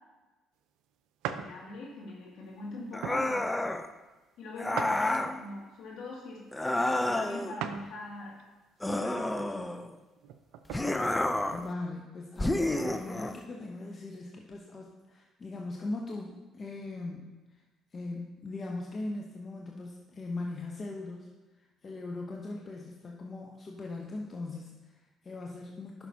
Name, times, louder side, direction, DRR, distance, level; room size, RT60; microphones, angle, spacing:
sound 1, 1.2-1.5 2.1-2.3 3.0-3.3 4.7-5.5 7.6-7.9 8.4-8.5 10.2-10.9, right 8 dB, 75° right, 0.4 m, -38 dB
voice 1, 1.3-3.4 4.4-6.4 7.0-8.4 8.8-9.7, left 2 dB, 70° left, -4 dB, 2.3 m, -42 dB
sound 2, 2.9-3.9 4.6-5.4 6.5-7.5 8.8-9.9 10.7-11.7 12.4-13.4, left 1 dB, 15° left, 0.5 m, -30 dB
voice 2, 11.5-17.6 17.9-26.1, left 2 dB, 40° left, 0 dB, 0.9 m, -40 dB
11.0 x 5.8 x 2.8 m, 1.2 s
hypercardioid pair, 60°, 0 cm